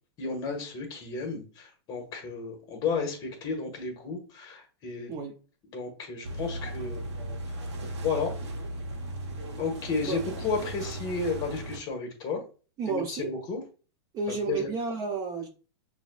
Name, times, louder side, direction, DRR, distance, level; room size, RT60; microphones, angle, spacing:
voice 1, 0.2-5.1 5.7-7.0 7.5-7.6 8.0-8.3 9.6-12.4 12.9-13.6 14.5-14.7, left 4 dB, 30° left, 1.3 m, -32 dB
sound 1, 6.2-11.8, right 1 dB, 80° right, 1.2 m, -36 dB
voice 2, 12.8-13.4 14.1-15.5, right 4 dB, 25° right, 0.5 m, -31 dB
6.0 x 2.7 x 2.3 m
supercardioid pair, 145°, 14 cm